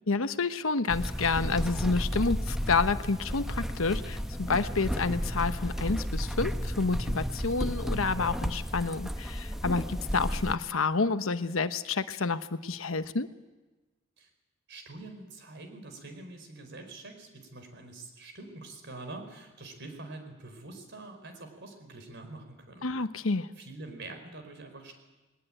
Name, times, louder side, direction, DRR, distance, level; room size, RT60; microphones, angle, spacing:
voice 1, 0.1-13.3 22.8-23.5, left 4 dB, 85° left, 11 dB, 1.0 m, -29 dB
sound 1, 0.9-10.6, equal, ahead, 1.0 m, -33 dB
voice 2, 14.7-22.9 23.6-24.9, right 2 dB, 60° right, 6 dB, 4.8 m, -45 dB
21.0 x 19.0 x 9.0 m, 1.2 s
head